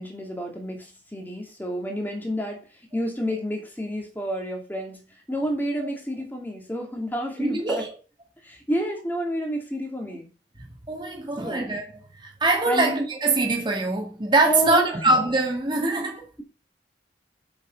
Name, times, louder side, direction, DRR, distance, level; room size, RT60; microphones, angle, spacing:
voice 1, 0.0-2.6 2.9-5.0 5.3-7.6 8.5-10.3 11.4-11.6 12.7-12.9 14.4-14.9, equal, 10° left, 2.5 m, -29 dB
voice 2, 7.4-8.0 10.9-16.3, right 2 dB, 25° right, 2.2 m, -23 dB
7.5 x 6.8 x 5.3 m
head